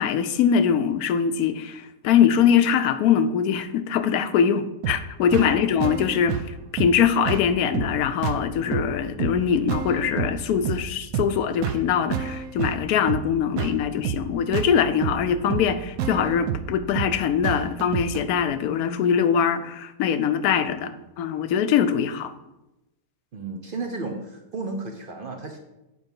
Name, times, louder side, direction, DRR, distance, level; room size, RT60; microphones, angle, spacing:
voice 1, 0.0-6.4 6.7-22.3, left 8 dB, 85° left, 11 dB, 1.1 m, -22 dB
sound 1, 4.8-18.2, right 8 dB, 75° right, 1.0 m, -30 dB
voice 2, 23.3-25.6, right 3 dB, 50° right, 4 dB, 0.7 m, -33 dB
8.1 x 4.5 x 5.3 m, 0.96 s
omnidirectional pair, 1.5 m